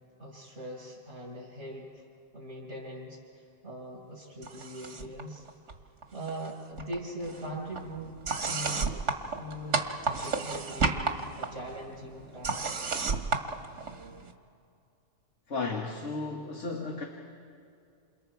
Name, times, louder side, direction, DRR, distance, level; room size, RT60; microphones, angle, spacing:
voice 1, 0.2-2.0 2.3-5.4 6.1-8.2 8.4-9.8 10.1-12.7, right 1 dB, 60° right, -8 dB, 5.8 m, -41 dB
sound 1, 4.4-5.2 5.5-6.5 6.8-14.3, right 4 dB, 80° right, 1.6 m, -33 dB
voice 2, 15.5-17.0, left 3 dB, 80° left, 0 dB, 1.9 m, -34 dB
28.5 x 28.0 x 4.7 m, 2.5 s
omnidirectional pair, 1.2 m